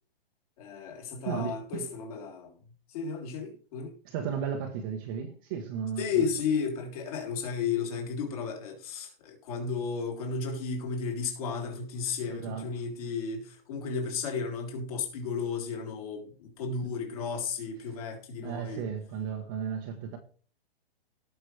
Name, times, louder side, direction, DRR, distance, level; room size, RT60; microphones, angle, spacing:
voice 1, 0.6-2.6 2.9-3.9 6.0-18.8, left 5 dB, 35° left, 3.8 m, -33 dB
voice 2, 1.3-1.9 4.0-6.2 12.3-12.7 18.4-20.2, right 7 dB, 20° right, 1.1 m, -34 dB
18.0 x 6.1 x 3.3 m
hypercardioid pair, 165°, 31 cm